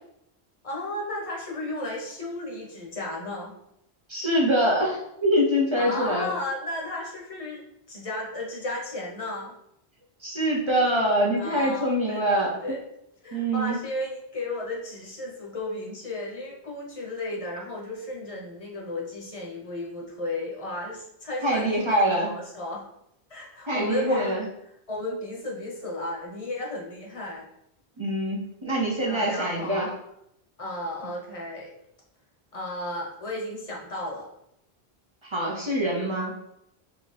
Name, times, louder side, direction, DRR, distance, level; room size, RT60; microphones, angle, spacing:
voice 1, 0.6-3.5 5.8-9.5 11.4-12.8 13.2-22.8 23.3-24.4 24.9-27.5 29.0-30.0 30.6-31.7 32.5-34.3, left 2 dB, 35° left, -2 dB, 0.8 m, -34 dB
voice 2, 4.1-6.3 10.2-12.6 13.3-13.8 21.4-22.3 23.7-24.4 28.0-29.9 35.2-36.3, equal, 40° right, -2 dB, 0.5 m, -24 dB
3.9 x 2.4 x 3.2 m, 0.79 s
omnidirectional pair, 1.1 m